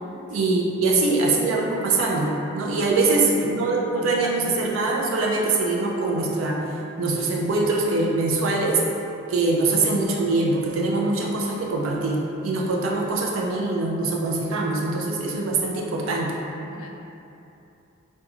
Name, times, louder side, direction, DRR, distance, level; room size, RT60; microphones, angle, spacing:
voice 1, 0.1-6.6 7.0-8.8 9.3-16.4, right 3 dB, 70° right, -1 dB, 0.4 m, -23 dB
voice 2, 1.0-1.4 3.2-4.7 9.9-10.2 16.7-16.9, left 2 dB, 80° left, 1 dB, 0.3 m, -37 dB
2.4 x 2.2 x 2.8 m, 2.8 s
head